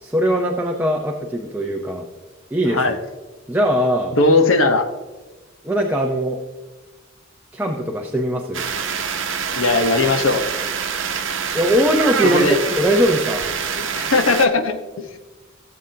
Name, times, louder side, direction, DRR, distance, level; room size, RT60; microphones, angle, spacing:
voice 1, 0.0-2.1 2.5-3.0 3.5-4.2 5.6-6.4 7.5-8.6 11.5-13.4, equal, 10° right, 0 dB, 0.7 m, -20 dB
voice 2, 4.2-4.9 9.6-10.4 12.3-12.6 13.8-15.2, left 3 dB, 90° left, 7 dB, 1.0 m, -18 dB
sound 1, 8.5-14.5, right 6 dB, 70° right, 0.9 m, -25 dB
16.5 x 7.6 x 2.8 m, 1.2 s
head